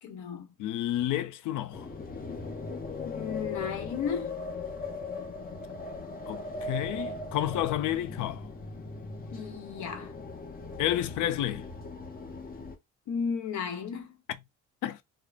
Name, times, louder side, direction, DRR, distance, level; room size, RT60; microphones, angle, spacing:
voice 1, 0.0-0.5 3.0-4.3 9.3-10.1 12.6-12.7 13.1-14.2, left 6 dB, 70° left, 0.9 m, -34 dB
voice 2, 0.6-1.9 6.3-8.4 10.8-11.7 14.8-15.0, left 13 dB, 85° left, 0.5 m, -30 dB
sound 1, 1.7-12.8, left 3 dB, 30° left, 0.8 m, -39 dB
2.3 x 2.0 x 3.3 m
cardioid pair, 90°, 30 cm